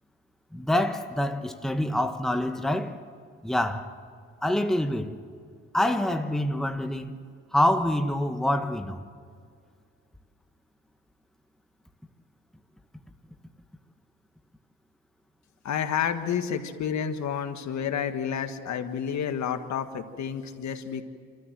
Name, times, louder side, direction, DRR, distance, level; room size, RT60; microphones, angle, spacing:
voice 1, 0.5-3.0 3.4-3.9 4.4-5.2 5.7-7.1 7.5-9.0, left 1 dB, ahead, 1.3 m, -26 dB
voice 2, 15.6-21.0, left 8 dB, 65° left, 1.6 m, -30 dB
29.0 x 14.0 x 7.6 m
cardioid pair, 90°, 30 cm